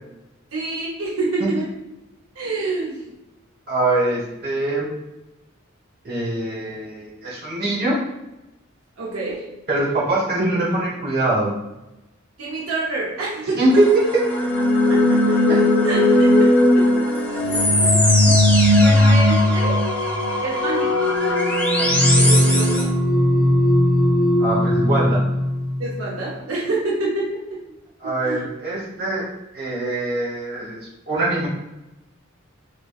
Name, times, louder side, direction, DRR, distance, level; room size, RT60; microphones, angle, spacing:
voice 1, 0.5-1.7 2.4-3.0 9.0-9.4 12.4-13.6 14.9-15.5 15.8-17.0 17.5-19.8 20.4-21.0 21.8-22.9 25.8-27.6 28.0-28.4, right 3 dB, 85° right, -5 dB, 0.7 m, -28 dB
voice 2, 3.7-4.9 6.0-8.0 9.7-11.5 13.6-14.2 15.5-15.6 24.4-25.2 28.0-29.2 29.5-30.8 31.1-31.5, right 2 dB, 45° right, -6 dB, 1.0 m, -22 dB
sound 1, 13.7-22.8, left 1 dB, 5° left, 0.4 m, -25 dB
sound 2, 14.1-26.0, left 1 dB, 75° left, 0.6 m, -18 dB
3.2 x 3.0 x 2.3 m, 0.98 s
head